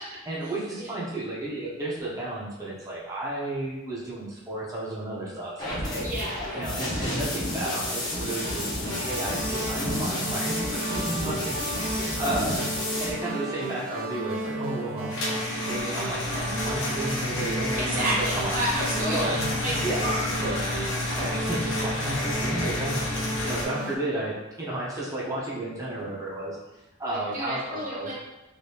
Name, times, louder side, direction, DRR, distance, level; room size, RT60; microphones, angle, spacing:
voice 1, 0.3-6.1 6.5-12.7 13.0-19.4 19.8-20.1 20.4-20.6 21.1-26.6 27.0-28.1, right 1 dB, 15° right, -7 dB, 0.6 m, -33 dB
sound 1, 5.6-13.1, left 1 dB, 20° left, 0.7 m, -31 dB
voice 2, 6.0-6.4 17.8-19.7 20.0-20.2 27.1-28.1, right 1 dB, 40° right, -6 dB, 1.0 m, -30 dB
sound 2, 8.9-24.0, right 1 dB, 80° right, 0.5 m, -34 dB
sound 3, 15.1-23.7, left 1 dB, 65° left, 0.7 m, -30 dB
3.3 x 2.7 x 2.8 m, 1.0 s
head